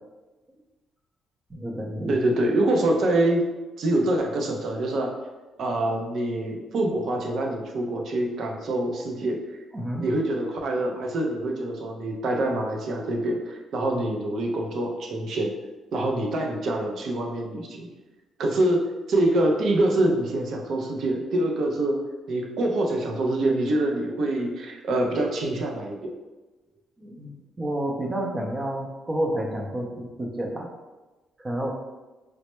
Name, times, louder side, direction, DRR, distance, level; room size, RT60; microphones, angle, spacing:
voice 1, 1.5-2.3 9.7-10.1 27.0-30.7 31.4-31.7, right 1 dB, 25° right, 0 dB, 0.6 m, -30 dB
voice 2, 2.1-3.5 3.8-5.1 5.6-9.4 10.0-15.5 15.9-17.9 18.4-22.0 22.3-26.1, right 1 dB, 65° right, 1 dB, 0.6 m, -25 dB
3.2 x 2.0 x 3.0 m, 1.1 s
cardioid pair, 90°, 0 cm